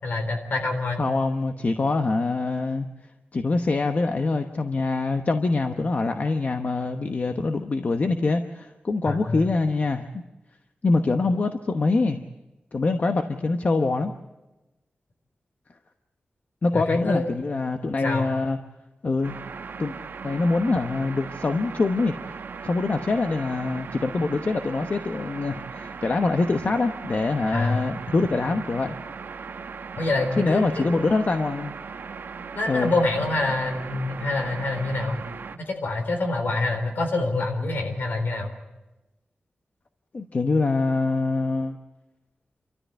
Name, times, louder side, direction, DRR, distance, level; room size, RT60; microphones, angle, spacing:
voice 1, 0.0-1.0 9.1-9.5 16.7-17.4 18.0-18.3 27.5-27.8 30.0-31.0 32.5-35.2 35.7-38.5, left 2 dB, 75° left, 4 dB, 3.9 m, -26 dB
voice 2, 1.0-2.9 3.3-10.1 10.8-12.2 12.7-14.1 16.6-18.6 19.0-19.4 19.8-19.9 20.2-22.1 22.6-28.9 30.4-31.7 32.7-32.9 40.1-41.8, left 3 dB, 50° left, 6 dB, 1.0 m, -24 dB
sound 1, 19.2-35.6, right 5 dB, 85° right, 1.1 m, -38 dB
28.5 x 14.0 x 8.2 m, 1.0 s
wide cardioid pair, 105°, 3 cm